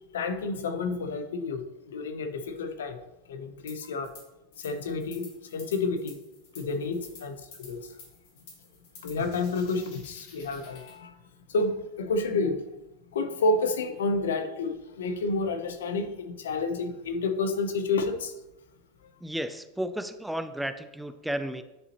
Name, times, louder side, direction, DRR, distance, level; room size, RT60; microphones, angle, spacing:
voice 1, 0.1-3.0 3.3-4.1 4.6-6.2 6.6-7.9 9.0-11.1 11.5-12.6 13.1-18.3, left 3 dB, 90° left, 8 dB, 0.7 m, -30 dB
sound 1, 3.7-4.2 4.5-11.0, left 4 dB, 65° left, 2.5 m, -50 dB
voice 2, 19.2-21.6, right 1 dB, 5° right, 10 dB, 0.4 m, -33 dB
10.0 x 4.0 x 2.9 m, 0.98 s
hypercardioid pair, 115°, 0 cm